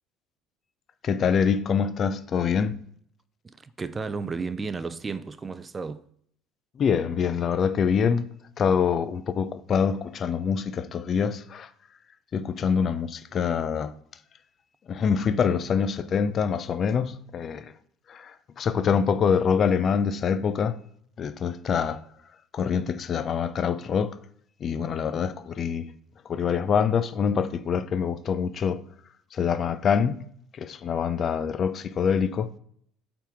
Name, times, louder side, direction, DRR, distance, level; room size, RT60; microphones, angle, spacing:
voice 1, 1.0-2.8 6.8-8.3 8.6-11.7 12.3-13.9 14.9-17.7 18.1-20.8 21.2-22.0 22.5-24.2 24.6-25.9 26.3-28.8 29.3-30.2 30.5-32.5, left 6 dB, 45° left, 0.6 m, -25 dB
voice 2, 3.4-6.0, right 4 dB, 25° right, 0.5 m, -33 dB
8.2 x 3.9 x 3.6 m
hypercardioid pair, 70°, 0 cm